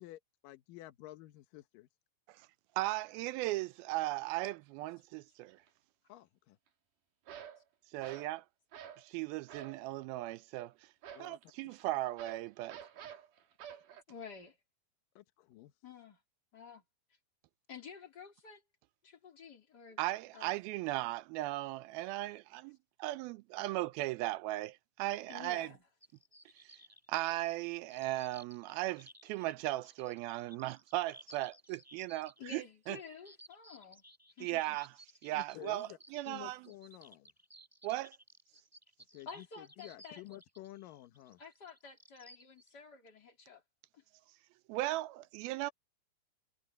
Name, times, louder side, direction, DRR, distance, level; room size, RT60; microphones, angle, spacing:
voice 1, 0.0-1.9 6.1-6.6 11.1-11.4 15.2-15.7 35.3-36.0 36.3-37.3 39.1-41.4, left 16 dB, 70° left, 2.3 m, -51 dB
voice 2, 2.8-5.6 7.9-8.4 9.0-10.7 11.2-12.8 20.0-25.7 26.6-26.7 27.1-33.0 34.4-34.9 35.2-36.7 37.8-38.1 44.7-45.7, right 17 dB, 80° right, 2.3 m, -37 dB
sound 1, 5.5-5.7 7.3-7.6 8.0-8.4 8.7-9.1 9.5-9.8 11.0-14.0, right 9 dB, 55° right, 3.3 m, -49 dB
voice 3, 14.1-14.6 15.8-16.2 16.5-16.8 17.7-18.6 19.0-20.0 20.3-20.6 25.3-25.8 32.4-34.0 34.4-34.8 39.3-40.2 41.4-43.6 43.9-44.0, left 5 dB, 25° left, 3.5 m, -51 dB
sound 2, 26.0-42.7, equal, 5° right, 5.8 m, -59 dB
omnidirectional pair, 4.7 m